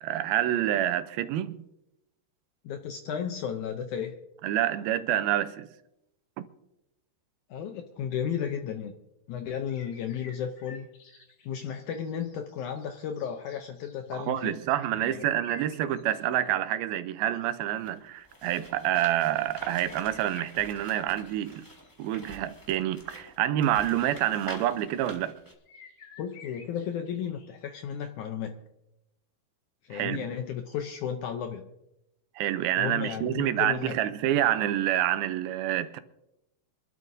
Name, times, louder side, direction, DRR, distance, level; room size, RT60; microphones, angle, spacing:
voice 1, 0.0-1.6 4.4-5.7 6.4-6.5 14.1-21.7 22.0-25.3 29.9-30.2 32.4-36.0, right 12 dB, 80° right, 2.5 m, -27 dB
voice 2, 2.6-4.1 7.5-8.9 9.3-10.9 11.5-14.6 14.9-15.3 26.2-28.6 29.9-31.7 32.8-34.0, left 8 dB, 75° left, 1.8 m, -34 dB
sound 1, 9.7-16.6 19.8-22.1 25.7-27.5, left 5 dB, 60° left, 3.4 m, -53 dB
sound 2, 17.7-25.5, equal, 20° left, 0.5 m, -47 dB
26.5 x 12.0 x 2.7 m
omnidirectional pair, 4.3 m